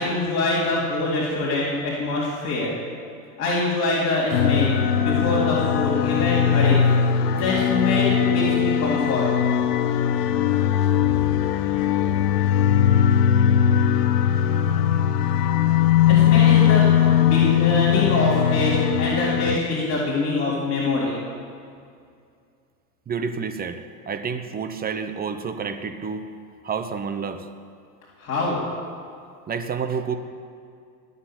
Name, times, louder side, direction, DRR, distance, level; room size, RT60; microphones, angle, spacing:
voice 1, 0.0-2.8 3.4-6.9 7.3-9.3 16.1-21.1 28.2-28.6, left 2 dB, 30° left, -7 dB, 3.9 m, -24 dB
sound 1, 4.3-19.6, left 9 dB, 75° left, 1.0 m, -20 dB
Bowed string instrument, 12.3-17.3, right 3 dB, 80° right, 4.1 m, -45 dB
voice 2, 23.1-26.2 26.6-27.5 29.5-30.2, right 6 dB, 20° right, 8 dB, 1.0 m, -29 dB
20.5 x 7.0 x 9.2 m, 2.3 s
supercardioid pair, 125°, 47 cm